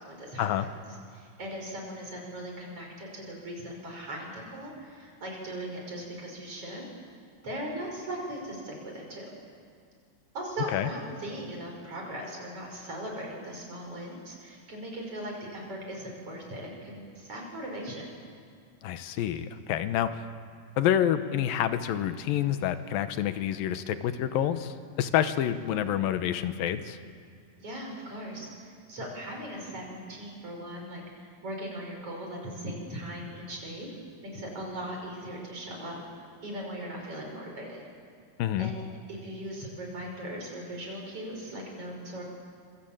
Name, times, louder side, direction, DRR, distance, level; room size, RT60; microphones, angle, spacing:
voice 1, 0.1-0.7 1.1-6.8 7.4-9.3 10.3-18.1 27.6-33.9 34.2-36.0 36.4-37.8 38.6-38.8 39.1-42.2, right 1 dB, 40° right, 0 dB, 6.6 m, -39 dB
voice 2, 18.8-20.2 20.8-27.0 38.4-38.7, left 10 dB, 90° left, 10 dB, 2.8 m, -28 dB
25.5 x 23.5 x 8.9 m, 2.2 s
omnidirectional pair, 4.0 m